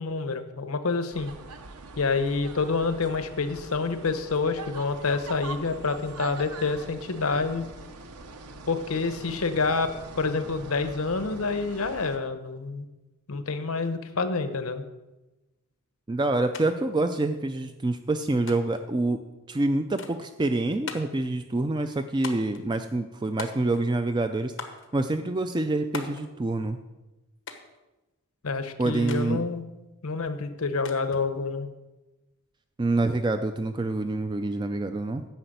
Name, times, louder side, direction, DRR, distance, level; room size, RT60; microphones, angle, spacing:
voice 1, 0.0-1.3 2.0-7.6 8.7-12.8 13.3-14.8 28.4-29.6 30.0-31.7, left 4 dB, 75° left, 10 dB, 0.9 m, -28 dB
sound 1, 1.1-12.2, right 3 dB, 85° right, 0.9 m, -43 dB
voice 2, 16.1-19.2 19.5-26.8 28.8-29.4 32.8-35.3, right 2 dB, 20° right, 8 dB, 0.3 m, -27 dB
sound 2, 16.5-16.7 16.9-17.7 18.5-18.9 20.0-20.3 20.9-21.2 22.2-22.6 23.4-23.9 24.6-24.9 25.9-26.3 27.5-27.8 29.1-29.3 30.9-31.3, left 5 dB, 55° left, 1.2 m, -39 dB
10.0 x 5.8 x 7.9 m, 1.1 s
head